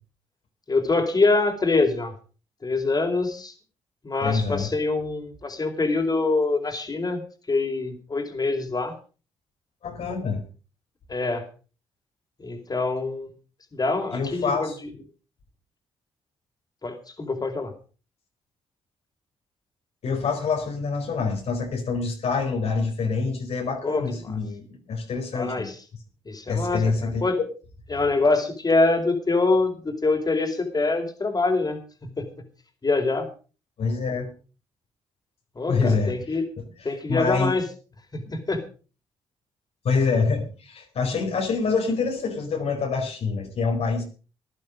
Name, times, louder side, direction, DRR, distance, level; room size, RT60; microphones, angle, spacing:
voice 1, 0.7-2.1 2.6-3.5 4.0-7.2 7.5-8.9 11.1-11.5 12.4-13.3 13.7-14.7 16.8-17.7 23.8-24.4 25.3-25.7 26.3-27.4 27.9-32.3 32.8-33.3 35.6-36.4 36.8-37.6 38.1-38.6, left 3 dB, 35° left, 5 dB, 4.6 m, -25 dB
voice 2, 4.2-4.7 9.8-10.4 14.1-14.8 20.0-25.7 26.5-27.2 33.8-34.3 35.7-36.4 36.8-37.5 38.3-38.4 39.8-44.0, left 4 dB, 65° left, 2 dB, 4.4 m, -26 dB
15.5 x 11.0 x 5.3 m, 0.36 s
supercardioid pair, 50°, 11 cm